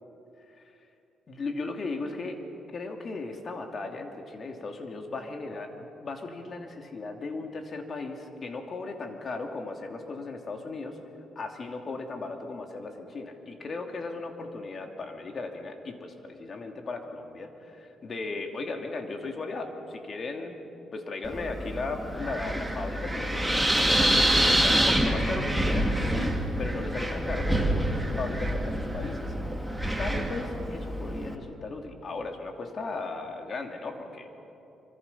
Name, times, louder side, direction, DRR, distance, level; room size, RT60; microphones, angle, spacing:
voice 1, 1.3-2.4 2.7-11.0 11.3-20.5 20.9-29.3 30.0-34.3, left 3 dB, 45° left, 4 dB, 2.8 m, -36 dB
Wind, 21.2-31.3, right 1 dB, 5° right, 2.5 m, -27 dB
26.5 x 25.0 x 5.7 m, 2.9 s
cardioid pair, 90°, 0 cm